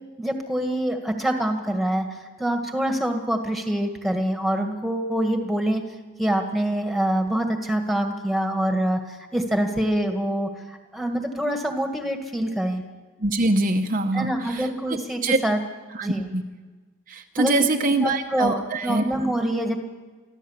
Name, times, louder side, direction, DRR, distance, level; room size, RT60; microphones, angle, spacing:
voice 1, 0.2-5.8 6.2-12.8 14.1-15.6 16.0-16.3 17.4-17.5 18.0-19.8, right 1 dB, ahead, 4 dB, 1.8 m, -25 dB
voice 2, 13.2-15.4 15.9-16.4 17.1-19.0, right 2 dB, 40° right, 4 dB, 0.9 m, -24 dB
25.0 x 15.0 x 7.3 m, 1.3 s
head